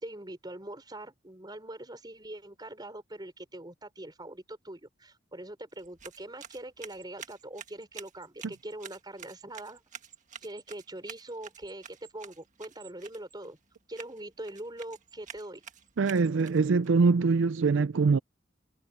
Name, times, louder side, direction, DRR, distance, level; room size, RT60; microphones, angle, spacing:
voice 1, 0.0-9.8 10.4-13.6 13.9-15.6, right 1 dB, 20° right, 4.9 m, -43 dB
sound 1, 5.7-16.9, right 8 dB, 40° right, 1.6 m, -49 dB
voice 2, 16.0-18.2, right 4 dB, 85° right, 0.5 m, -23 dB
head